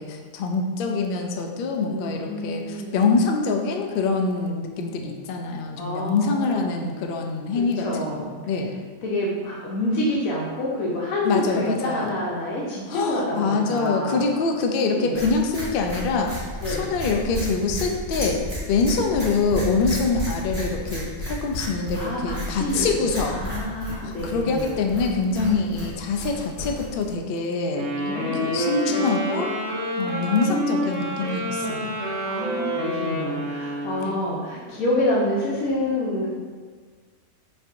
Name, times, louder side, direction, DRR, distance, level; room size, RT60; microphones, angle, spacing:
voice 1, 0.0-8.7 11.2-12.1 12.9-18.4 18.7-23.4 23.9-29.5 30.0-31.9 34.0-34.2, left 4 dB, 70° left, 3 dB, 0.5 m, -25 dB
voice 2, 1.9-3.1 5.8-6.8 7.5-8.3 9.0-14.3 14.9-15.2 16.6-16.9 21.9-24.8 28.0-29.1 32.2-36.3, left 1 dB, 85° left, -5 dB, 1.1 m, -28 dB
sound 1, 15.1-27.1, equal, 30° right, 1.5 m, -33 dB
Wind instrument woodwind instrument, 27.7-34.2, equal, 55° right, 1.1 m, -28 dB
5.4 x 3.3 x 2.6 m, 1.5 s
omnidirectional pair, 1.4 m